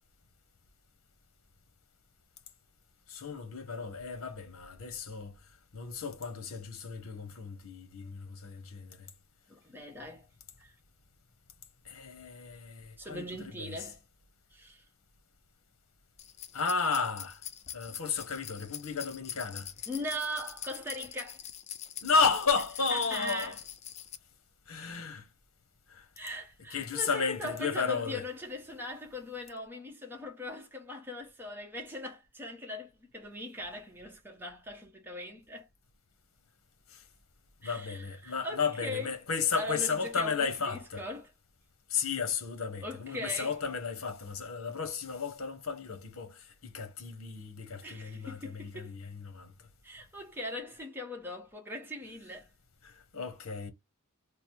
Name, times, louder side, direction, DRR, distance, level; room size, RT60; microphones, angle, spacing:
voice 1, 3.1-5.4 5.7-9.1 11.8-13.9 16.5-17.4 17.7-19.7 22.0-23.6 24.7-25.3 25.9-26.1 26.7-28.2 36.9-37.0 37.6-41.0 41.9-49.7 52.8-53.7, left 5 dB, 65° left, 0.9 m, -33 dB
voice 2, 9.5-10.3 10.6-10.7 13.0-14.0 14.5-14.8 19.9-21.4 22.9-23.6 26.2-35.7 37.6-39.1 39.6-41.3 42.8-43.5 47.8-48.9 49.8-52.5, left 1 dB, 10° right, 0.8 m, -40 dB
sound 1, 16.2-24.2, left 10 dB, 30° left, 0.4 m, -44 dB
3.2 x 2.0 x 4.2 m
head